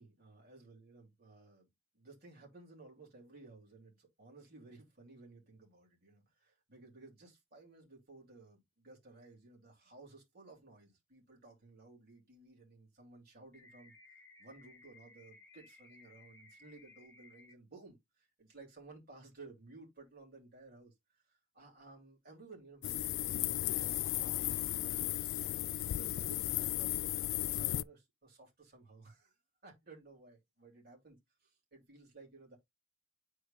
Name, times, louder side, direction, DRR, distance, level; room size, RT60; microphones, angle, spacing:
voice 1, 0.0-1.7 1.9-13.9 14.4-25.5 25.8-27.3 27.5-29.4 29.6-32.6, right 3 dB, 50° right, 2.8 m, -57 dB
sound 1, 13.5-17.5, left 3 dB, 10° left, 1.3 m, -60 dB
sound 2, 22.8-27.8, left 14 dB, 85° left, 0.3 m, -35 dB
11.0 x 4.8 x 2.3 m
head